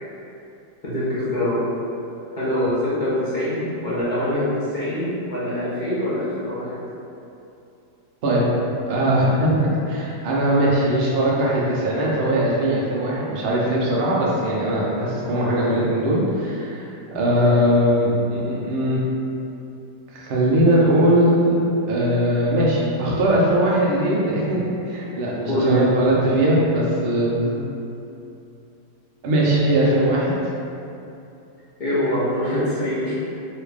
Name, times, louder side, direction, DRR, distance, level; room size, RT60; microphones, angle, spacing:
voice 1, 0.8-1.6 2.4-4.4 4.7-6.8 15.3-15.8 17.4-17.5 25.5-25.8 27.4-27.6 31.8-33.1, equal, 50° left, -11 dB, 0.5 m, -24 dB
voice 2, 8.9-19.0 20.1-21.5 21.9-27.3 29.2-30.3, right 1 dB, 85° right, -5 dB, 0.5 m, -20 dB
3.2 x 2.4 x 3.3 m, 2.7 s
omnidirectional pair, 1.9 m